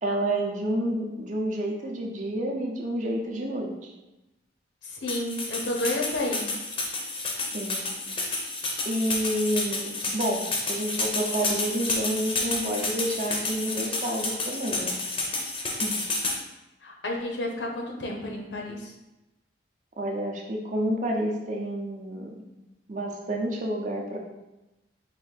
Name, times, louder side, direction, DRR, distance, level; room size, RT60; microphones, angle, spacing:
voice 1, 0.0-3.9 7.5-7.9 8.8-15.0 15.8-16.0 20.0-22.3 22.9-24.2, right 1 dB, 40° right, 0 dB, 0.7 m, -29 dB
voice 2, 4.9-6.5 16.8-18.9, left 1 dB, 70° left, 1 dB, 0.8 m, -31 dB
sound 1, 5.1-16.4, left 3 dB, 30° left, 0.6 m, -30 dB
4.7 x 2.6 x 4.0 m, 1.0 s
head